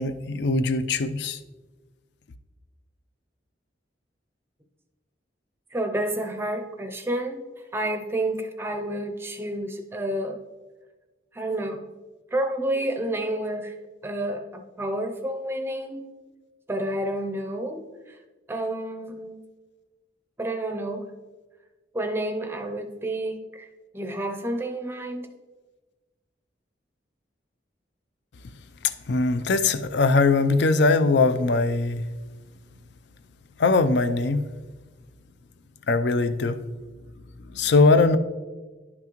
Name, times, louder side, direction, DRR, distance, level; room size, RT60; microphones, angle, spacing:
voice 1, 0.0-1.4 29.1-32.0 33.6-34.4 35.9-36.6 37.5-38.2, left 3 dB, 65° left, 0.4 m, -21 dB
voice 2, 5.7-7.5 7.7-10.4 11.3-11.9 12.3-13.8 14.0-16.1 16.7-17.8 18.1-18.2 18.5-19.4 20.4-21.1 21.9-23.7 23.9-25.3, right 1 dB, 15° right, 0.5 m, -29 dB
11.0 x 5.9 x 3.0 m
head